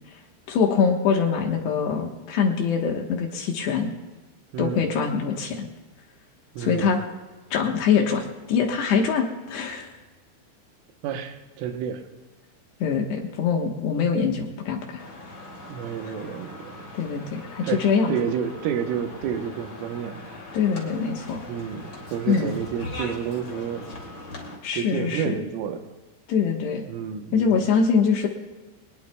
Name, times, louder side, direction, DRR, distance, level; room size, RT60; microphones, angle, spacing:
voice 1, 0.5-3.9 4.6-5.7 6.6-7.0 7.5-9.9 12.8-15.0 16.9-18.1 20.5-21.4 22.3-22.5 24.6-25.4 26.3-26.8 27.3-28.3, left 6 dB, 70° left, 1 dB, 3.1 m, -23 dB
voice 2, 4.5-4.9 6.6-6.9 11.0-12.0 15.7-16.9 17.6-20.2 21.5-23.9 24.7-25.8 26.9-27.7, right 8 dB, 80° right, 5 dB, 3.6 m, -30 dB
sound 1, 15.0-24.6, left 2 dB, 35° left, 2.2 m, -40 dB
23.5 x 20.0 x 2.3 m, 1.2 s
omnidirectional pair, 5.7 m